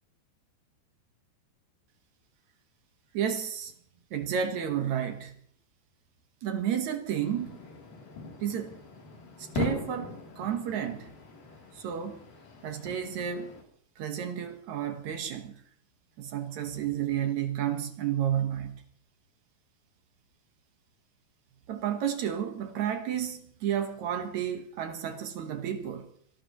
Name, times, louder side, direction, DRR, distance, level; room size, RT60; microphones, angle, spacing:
voice 1, 3.1-3.7 4.1-5.3 6.4-7.6 8.4-8.8 9.4-11.1 11.7-12.2 12.6-13.5 14.0-15.5 16.2-18.8 21.7-26.1, right 9 dB, 70° right, 1.8 m, -31 dB
sound 1, 7.2-13.6, left 4 dB, 55° left, 4.6 m, -40 dB
26.0 x 18.0 x 3.1 m
omnidirectional pair, 5.0 m